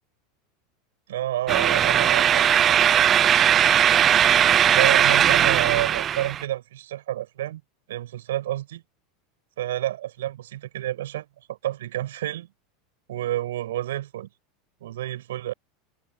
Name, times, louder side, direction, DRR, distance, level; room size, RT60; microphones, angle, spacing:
voice 1, 1.1-2.8 4.7-7.6 7.9-8.8 9.6-12.5 13.1-14.3 14.8-15.5, right 13 dB, 65° right, 5.7 m, -29 dB
sound 1, 1.5-6.4, right 9 dB, 30° right, 0.8 m, -19 dB
figure-of-eight pair, 80°, 0 cm